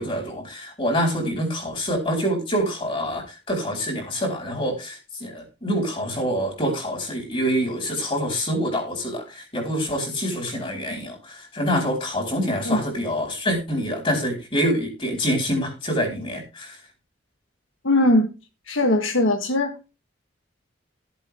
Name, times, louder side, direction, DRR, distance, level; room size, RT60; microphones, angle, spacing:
voice 1, 0.0-16.8, equal, 25° left, 1 dB, 4.5 m, -26 dB
voice 2, 17.8-18.3 18.7-19.7, left 1 dB, 75° left, 5 dB, 1.6 m, -20 dB
14.0 x 8.2 x 3.7 m, 0.29 s
head